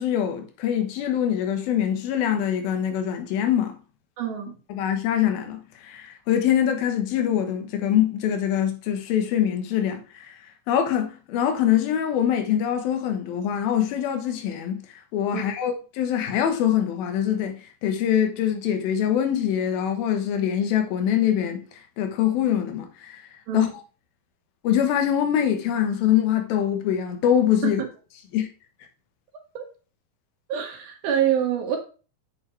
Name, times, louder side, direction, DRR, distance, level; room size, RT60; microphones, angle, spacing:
voice 1, 0.0-3.8 4.7-10.4 10.7-14.8 15.1-21.6 22.0-23.2 23.5-23.7 24.6-27.8 28.3-28.5, left 10 dB, 80° left, 2.9 m, -24 dB
voice 2, 4.2-4.6 15.3-15.4 23.5-23.7 27.6-27.9 29.5-29.6 30.5-31.8, right 9 dB, 75° right, 3.2 m, -26 dB
8.9 x 7.1 x 3.2 m
omnidirectional pair, 4.3 m